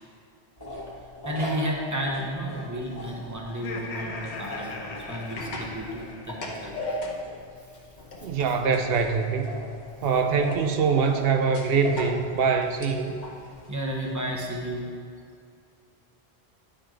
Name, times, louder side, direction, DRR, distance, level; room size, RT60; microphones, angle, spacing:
sound 1, 0.6-14.7, left 1 dB, 20° left, 1.5 m, -41 dB
voice 1, 1.2-6.7 10.3-10.4 13.7-14.9, equal, 20° right, -2 dB, 0.9 m, -32 dB
sound 2, 2.8-14.1, left 1 dB, 45° left, 0.9 m, -40 dB
Laughter, 3.5-6.7, left 4 dB, 85° left, 1.0 m, -39 dB
voice 2, 8.2-9.5 10.0-13.1, right 5 dB, 70° right, 6 dB, 0.8 m, -24 dB
9.9 x 4.3 x 4.5 m, 2.3 s
omnidirectional pair, 1.1 m